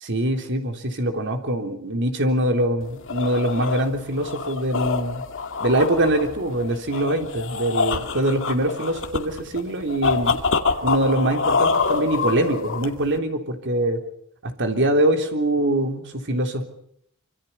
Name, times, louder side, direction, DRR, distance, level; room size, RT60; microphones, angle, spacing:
voice 1, 0.0-5.2 5.6-10.4 10.8-14.0 14.4-16.6, right 1 dB, 55° right, 5 dB, 3.6 m, -23 dB
sound 1, 2.8-13.2, left 4 dB, 60° left, 2.3 m, -26 dB
26.0 x 25.5 x 5.7 m, 0.69 s
head